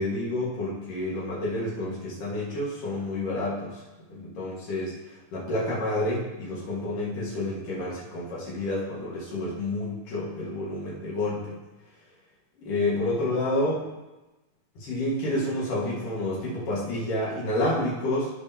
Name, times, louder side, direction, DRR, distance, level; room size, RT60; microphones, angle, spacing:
voice 1, 0.0-3.8 4.1-4.9 5.3-11.5 12.6-13.8 14.8-18.3, left 1 dB, 75° left, -7 dB, 3.3 m, -29 dB
15.0 x 5.3 x 2.9 m, 1.1 s
omnidirectional pair, 3.8 m